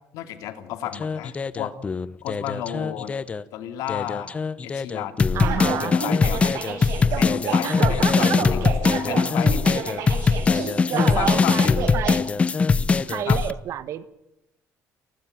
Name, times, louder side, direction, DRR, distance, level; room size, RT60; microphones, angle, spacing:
voice 1, 0.1-1.7 2.2-3.2 3.5-6.7 7.1-8.6 9.0-10.0 10.5-11.8 13.3-13.4, left 11 dB, 85° left, 9 dB, 2.6 m, -33 dB
sound 1, 0.9-3.4 3.9-13.5, left 4 dB, 20° left, 0.7 m, -22 dB
voice 2, 5.3-6.0 7.6-8.4 10.9-12.2 13.1-14.1, right 11 dB, 60° right, 14 dB, 1.5 m, -30 dB
sound 2, 5.4-12.2, right 8 dB, 80° right, 7.5 m, -30 dB
30.0 x 12.5 x 9.0 m, 0.89 s
cardioid pair, 155°, 6 cm